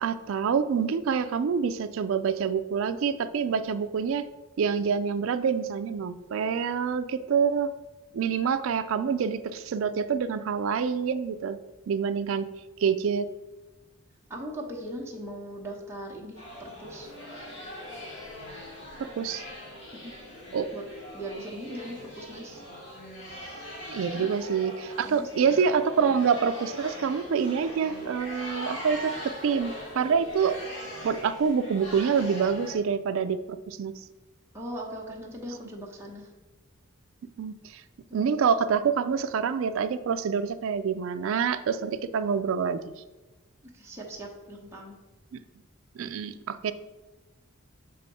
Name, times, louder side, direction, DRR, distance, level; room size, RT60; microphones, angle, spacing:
voice 1, 0.0-4.3 4.6-7.7 8.1-11.6 11.9-12.5 12.8-13.3 19.0-19.4 20.5-20.7 23.9-30.6 31.0-33.9 37.4-37.8 38.1-42.8 46.0-46.7, right 6 dB, 65° right, 11 dB, 0.3 m, -26 dB
voice 2, 14.3-17.1 19.9-20.1 20.7-20.8 21.1-22.6 24.1-24.3 25.0-25.7 26.0-26.1 34.5-36.3 38.1-38.3 43.7-45.0, right 1 dB, 10° right, -3 dB, 1.0 m, -40 dB
sound 1, 16.3-32.7, equal, 60° left, 1.9 m, -41 dB
6.5 x 3.5 x 4.1 m, 1.1 s
head